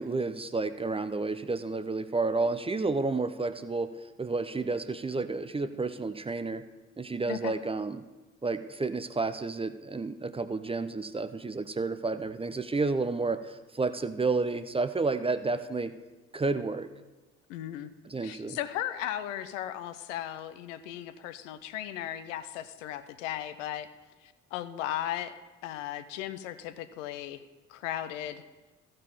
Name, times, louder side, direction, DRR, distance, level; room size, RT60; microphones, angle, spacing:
voice 1, 0.0-3.9 4.2-6.6 7.0-8.0 8.4-15.9 16.3-16.9 18.1-18.6, right 3 dB, 15° right, 11 dB, 0.5 m, -31 dB
voice 2, 17.5-17.9 18.2-23.9 24.2-25.4 25.6-27.4 27.7-28.4, left 12 dB, 75° left, 12 dB, 0.6 m, -36 dB
15.0 x 5.2 x 5.5 m, 1.2 s
figure-of-eight pair, 40°, 38 cm